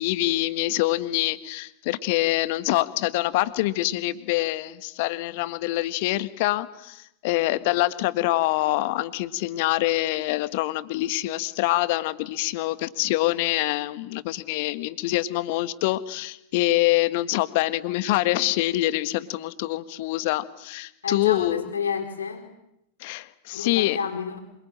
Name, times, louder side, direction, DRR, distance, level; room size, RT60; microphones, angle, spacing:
voice 1, 0.0-21.6 23.0-24.0, left 17 dB, 50° left, 15 dB, 1.5 m, -25 dB
voice 2, 21.0-22.5 23.5-24.4, left 6 dB, 70° left, 4 dB, 4.5 m, -30 dB
26.5 x 24.5 x 8.9 m, 0.80 s
figure-of-eight pair, 90°, 0 cm